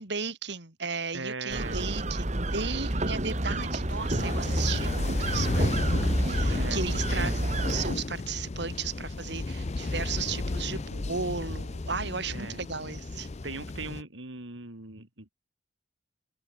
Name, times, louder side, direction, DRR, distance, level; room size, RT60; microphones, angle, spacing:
voice 1, 0.0-13.3, right 5 dB, 65° right, 2.6 m, -35 dB
voice 2, 1.1-1.9 2.7-3.1 6.5-6.8 7.1-7.3 12.3-12.6 13.4-15.3, right 3 dB, 85° right, 3.4 m, -39 dB
sound 1, 1.5-7.9, right 1 dB, 40° right, 2.3 m, -29 dB
sound 2, 3.4-14.0, left 2 dB, 35° left, 0.6 m, -33 dB
head